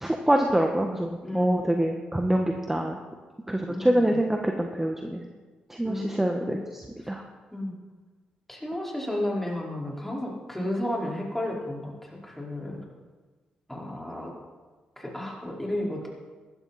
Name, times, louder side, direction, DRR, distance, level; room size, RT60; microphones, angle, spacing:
voice 1, 0.0-3.0 3.5-5.2 5.7-7.2, right 1 dB, 10° right, 3 dB, 1.4 m, -25 dB
voice 2, 1.2-1.6 3.7-4.2 5.8-6.6 7.0-7.2 7.5-7.7 8.5-12.8 13.7-14.3 15.0-16.1, left 1 dB, 10° left, -3 dB, 4.7 m, -33 dB
15.0 x 12.5 x 4.3 m, 1.3 s
supercardioid pair, 60°, 3 cm